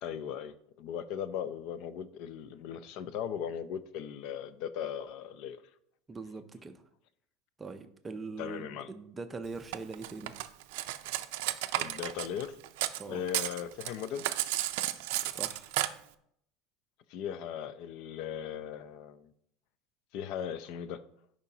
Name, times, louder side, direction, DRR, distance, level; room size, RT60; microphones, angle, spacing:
voice 1, 0.0-5.6 8.4-8.9 11.7-12.6 13.1-14.4 17.1-19.3 20.1-21.0, left 9 dB, 50° left, 14 dB, 0.4 m, -38 dB
voice 2, 6.1-6.7 7.6-10.3 13.0-13.2 15.3-15.7, right 4 dB, 15° right, 7 dB, 0.5 m, -42 dB
Cutlery silverware, 9.7-13.0 13.3-15.9, right 15 dB, 70° right, 0.4 m, -33 dB
11.0 x 5.0 x 2.8 m, 0.71 s
cardioid pair, 165°, 0 cm